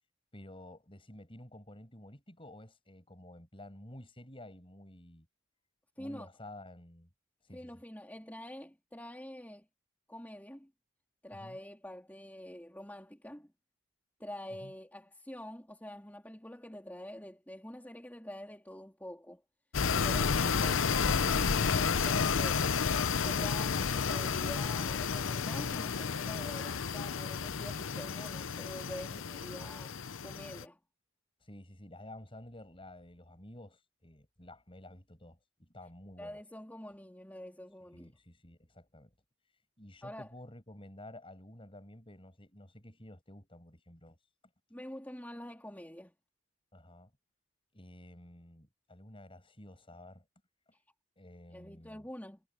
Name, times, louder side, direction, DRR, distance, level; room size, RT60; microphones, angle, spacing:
voice 1, 0.3-5.3 6.0-7.1 7.4-7.7 11.3-11.6 14.6-14.7 29.1-29.2 29.5-29.7 31.4-36.4 37.9-39.1 39.8-44.2 46.7-47.1 47.7-50.2 51.2-52.1, left 1 dB, 25° left, 7.2 m, -51 dB
voice 2, 6.0-6.3 7.5-9.7 10.1-10.7 11.2-13.5 14.2-19.4 23.2-29.9 30.2-30.8 36.2-38.1 40.0-40.3 44.7-46.1 50.7-50.8 51.5-52.4, left 1 dB, 10° left, 3.6 m, -46 dB
sound 1, 19.7-30.6, left 6 dB, 70° left, 0.7 m, -31 dB
head